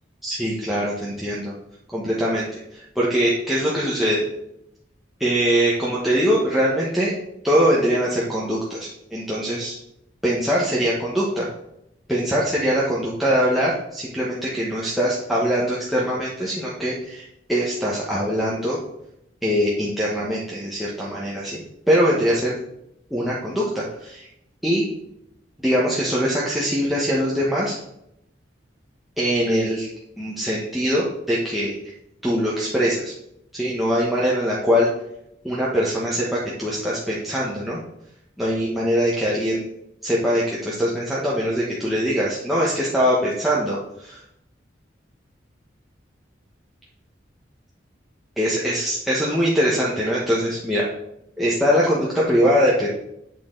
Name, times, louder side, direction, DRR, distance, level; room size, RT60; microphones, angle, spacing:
voice 1, 0.2-1.5 1.9-4.2 5.2-7.1 7.4-9.8 10.2-11.5 12.1-18.8 19.4-21.6 21.9-22.5 23.1-24.3 24.6-24.8 25.6-27.8 29.2-29.9 30.2-31.7 32.2-33.1 33.5-34.9 35.4-37.8 38.4-39.6 40.0-44.2 48.4-50.9 51.4-52.9, equal, ahead, -7 dB, 1.2 m, -22 dB
8.5 x 6.4 x 3.8 m, 0.81 s
head